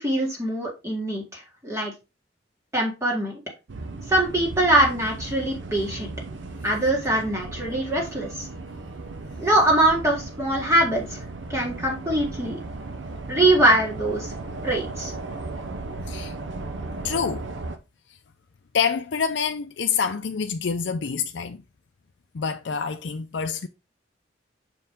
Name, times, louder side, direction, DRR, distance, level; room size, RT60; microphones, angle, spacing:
voice 1, 0.0-1.9 2.7-3.4 4.1-6.1 6.6-8.3 9.4-11.2 11.5-12.6 13.3-14.3 14.6-15.1, right 1 dB, 15° right, 1.7 m, -22 dB
sound 1, 3.7-17.8, right 3 dB, 85° right, 0.8 m, -36 dB
voice 2, 17.0-17.4 18.7-21.6 22.3-23.7, left 6 dB, 75° left, 0.5 m, -26 dB
6.1 x 4.6 x 3.6 m
head